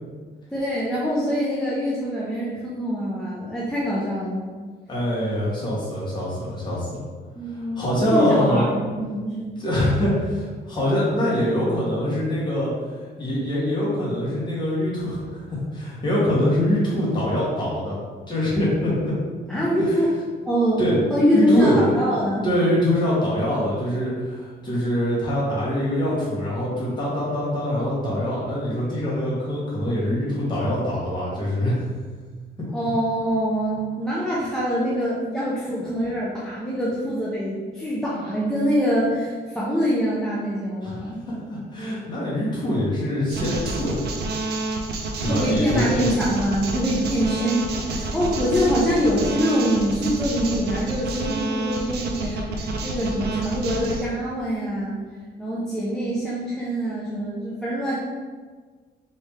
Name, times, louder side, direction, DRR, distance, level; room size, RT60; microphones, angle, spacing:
voice 1, 0.5-4.5 7.4-9.5 19.5-20.1 20.5-20.8 21.1-22.5 32.7-41.2 45.3-55.0 55.4-57.9, equal, 5° left, -8 dB, 0.4 m, -24 dB
voice 2, 4.9-7.0 7.8-8.7 9.6-12.7 13.2-18.0 18.3-19.1 20.8-21.0 21.3-31.8 40.8-44.0 45.1-46.0, left 1 dB, 25° left, -7 dB, 1.2 m, -24 dB
sound 1, 43.3-54.1, right 2 dB, 65° right, 0.5 m, -29 dB
3.2 x 2.8 x 3.4 m, 1.5 s
cardioid pair, 165°, 18 cm